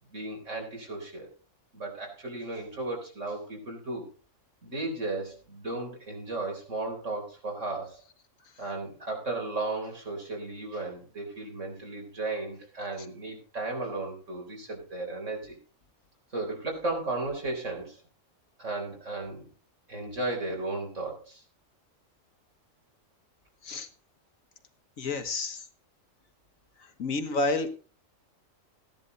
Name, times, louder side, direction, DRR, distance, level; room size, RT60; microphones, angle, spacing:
voice 1, 0.1-1.3 1.7-4.1 4.6-8.0 8.6-15.6 16.3-18.0 18.6-19.5 19.9-21.4, right 2 dB, 65° right, 0 dB, 4.2 m, -35 dB
voice 2, 25.0-25.6 27.0-27.7, left 3 dB, 85° left, 7 dB, 1.8 m, -29 dB
15.0 x 10.5 x 4.0 m, 0.36 s
omnidirectional pair, 1.4 m